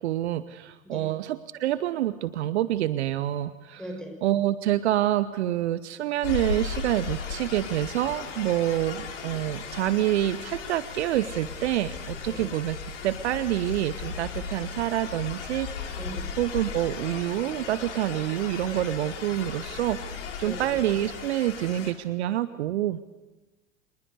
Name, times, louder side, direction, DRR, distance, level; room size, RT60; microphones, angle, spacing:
voice 1, 0.0-3.8 4.2-12.8 13.0-15.7 16.4-20.0 20.4-23.0, right 13 dB, 55° right, 15 dB, 0.9 m, -27 dB
voice 2, 3.8-4.2 8.8-9.0 12.3-12.6 16.0-16.3 20.4-20.7, right 1 dB, ahead, 2 dB, 6.2 m, -39 dB
sound 1, 6.2-21.9, left 5 dB, 60° left, 3.9 m, -36 dB
25.5 x 20.5 x 8.1 m, 1.2 s
figure-of-eight pair, 90°, 40 cm